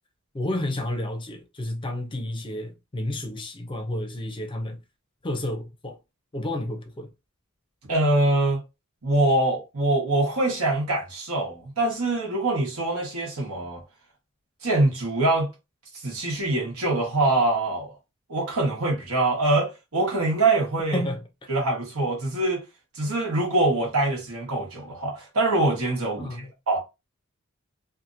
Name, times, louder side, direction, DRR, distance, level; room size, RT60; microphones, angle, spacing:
voice 1, 0.3-4.8 5.2-6.0 6.3-7.1 20.9-21.2 26.2-26.5, left 1 dB, 25° left, 0.6 m, -31 dB
voice 2, 7.9-8.6 9.0-13.8 14.6-15.5 15.9-17.9 18.3-21.0 21.5-22.6 22.9-26.8, right 2 dB, 80° right, 1.3 m, -24 dB
2.9 x 2.6 x 2.5 m
head